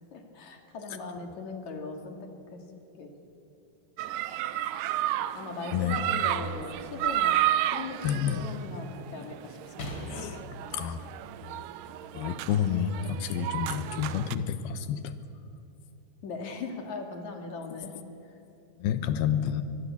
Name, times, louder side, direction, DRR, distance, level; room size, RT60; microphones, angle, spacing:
voice 1, 0.1-2.6 2.9-3.1 5.3-10.2 16.2-18.0, left 3 dB, 55° left, 4 dB, 3.1 m, -39 dB
sound 1, 4.0-14.4, right 12 dB, 80° right, 2.1 m, -32 dB
sound 2, 6.7-7.4 9.8-11.3 12.1-12.2, left 1 dB, 35° left, 3.7 m, -43 dB
voice 2, 8.0-8.4 10.1-11.0 12.1-15.1 18.8-19.6, left 8 dB, 85° left, 10 dB, 3.0 m, -29 dB
24.0 x 20.5 x 8.4 m, 2.7 s
omnidirectional pair, 4.3 m